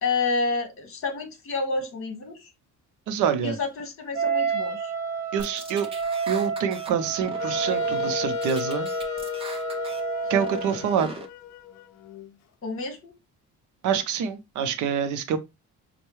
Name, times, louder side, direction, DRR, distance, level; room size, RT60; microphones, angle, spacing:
voice 1, 0.0-2.5 3.4-4.9 12.6-13.1, left 4 dB, 45° left, 1.4 m, -29 dB
voice 2, 3.1-3.6 5.3-5.9 6.3-8.9 10.3-11.2 13.8-15.4, right 7 dB, 70° right, 0.6 m, -26 dB
Wind instrument woodwind instrument, 4.1-10.8, right 6 dB, 50° right, 0.9 m, -30 dB
sound 1, 5.4-6.9 7.2-8.2 8.4-10.0 10.4-11.3, right 2 dB, 20° right, 0.7 m, -40 dB
Wind instrument woodwind instrument 2, 7.4-12.3, left 14 dB, 60° left, 0.5 m, -34 dB
5.3 x 2.2 x 3.1 m
cardioid pair, 155°, 31 cm